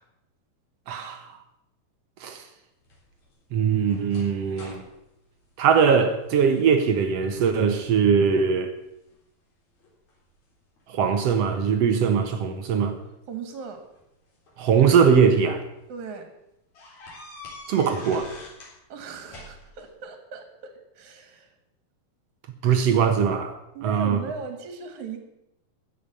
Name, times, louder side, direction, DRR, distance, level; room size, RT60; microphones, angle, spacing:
voice 1, 0.9-1.3 2.2-2.4 3.5-4.8 5.6-8.7 10.9-13.0 14.6-15.6 17.7-18.3 22.6-23.5 23.8-24.2, right 6 dB, 75° right, 7 dB, 1.5 m, -21 dB
sound 1, 2.8-6.3 6.7-7.1 7.3-8.0 8.5-9.2 9.8-11.2 12.4-12.5 13.7-15.1 15.7-15.8 16.1-16.2 16.7-18.8 19.0-19.9, left 2 dB, 45° left, 4.9 m, -46 dB
voice 2, 13.3-13.8 15.9-16.2 18.9-21.5 23.7-25.2, right 5 dB, 55° right, 7 dB, 2.7 m, -38 dB
15.0 x 7.0 x 8.9 m, 0.85 s
omnidirectional pair, 4.4 m